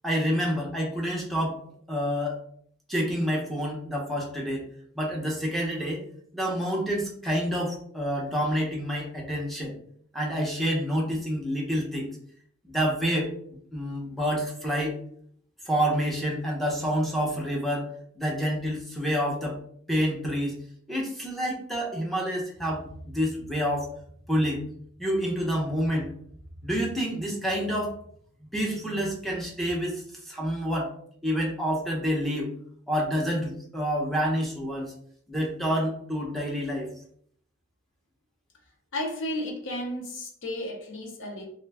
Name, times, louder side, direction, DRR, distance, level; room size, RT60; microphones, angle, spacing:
voice 1, 0.0-1.6 1.9-2.4 2.9-4.7 4.9-6.0 6.3-9.8 10.1-12.1 12.6-13.3 13.7-15.0 15.6-17.9 18.2-19.6 19.9-20.5 20.9-23.9 24.3-24.6 25.0-26.1 26.6-27.9 28.5-30.9 31.2-32.5 32.9-34.9 35.3-36.9, equal, ahead, -3 dB, 0.6 m, -28 dB
voice 2, 38.9-41.4, left 1 dB, 65° left, 0 dB, 0.6 m, -33 dB
2.4 x 2.2 x 3.3 m, 0.63 s
head